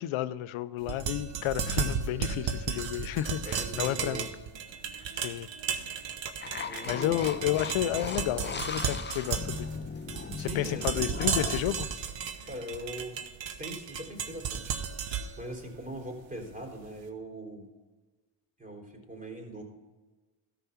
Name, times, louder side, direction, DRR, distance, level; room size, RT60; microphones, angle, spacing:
voice 1, 0.0-4.3 4.9-5.5 5.9-6.0 6.9-9.7 10.4-11.9, left 13 dB, 75° left, 15 dB, 0.7 m, -31 dB
sound 1, 0.8-16.9, right 7 dB, 65° right, 1.2 m, -34 dB
voice 2, 3.4-4.3 6.6-7.2 10.3-11.1 12.5-13.2 13.6-14.8 15.4-17.7 18.6-19.6, right 1 dB, 15° right, 0 dB, 3.6 m, -41 dB
sound 2, 6.4-11.6, left 5 dB, 20° left, 0.7 m, -38 dB
13.5 x 6.0 x 5.8 m, 1.3 s
supercardioid pair, 55°, 49 cm